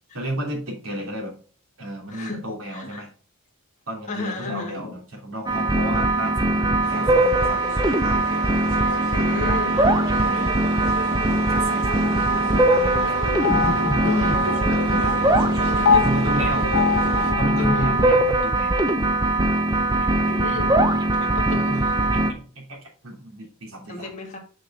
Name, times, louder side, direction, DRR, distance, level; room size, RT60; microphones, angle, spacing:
voice 1, 0.1-1.3 1.8-3.1 3.9-7.8 8.0-8.2 10.1-10.5 11.1-13.1 13.5-15.6 15.9-16.7 17.3-18.8 20.0-21.9 22.1-24.1, right 1 dB, 75° right, 0 dB, 3.1 m, -32 dB
voice 2, 2.0-3.0 4.1-4.9 9.1-9.8 14.0-14.4 15.7-16.0 17.6-18.0 20.2-20.7 21.2-21.9 23.9-24.4, left 3 dB, 35° left, 0 dB, 1.9 m, -32 dB
sound 1, 5.5-22.3, right 2 dB, 20° right, 0.8 m, -21 dB
sound 2, 6.8-17.3, right 1 dB, 90° right, 1.8 m, -33 dB
sound 3, 12.7-18.3, left 6 dB, 80° left, 0.7 m, -26 dB
6.5 x 6.2 x 3.5 m, 0.40 s
head